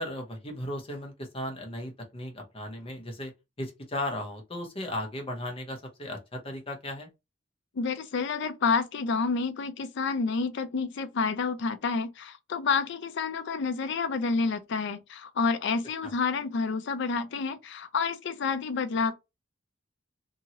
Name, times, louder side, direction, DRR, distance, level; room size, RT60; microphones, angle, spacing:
voice 1, 0.0-3.3 3.6-7.1 16.0-16.1, left 1 dB, 30° left, 0.8 m, -36 dB
voice 2, 7.8-19.1, left 4 dB, 65° left, 0.4 m, -29 dB
2.8 x 2.7 x 2.7 m
head